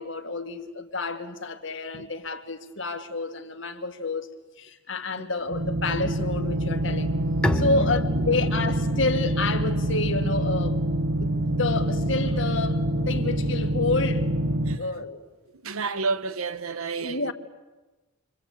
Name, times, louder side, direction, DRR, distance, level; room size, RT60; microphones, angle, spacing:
voice 1, 0.0-4.3 4.6-7.1 7.5-10.8 11.2-14.3 14.8-15.2 17.0-17.3, left 3 dB, 60° left, 2.1 m, -29 dB
sound 1, 5.5-14.8, right 1 dB, 50° right, 1.5 m, -26 dB
Bowed string instrument, 7.4-13.0, equal, 5° left, 1.2 m, -34 dB
voice 2, 7.7-8.3 14.6-14.8 15.6-17.3, right 4 dB, 85° right, 1.2 m, -31 dB
28.5 x 24.0 x 8.6 m
head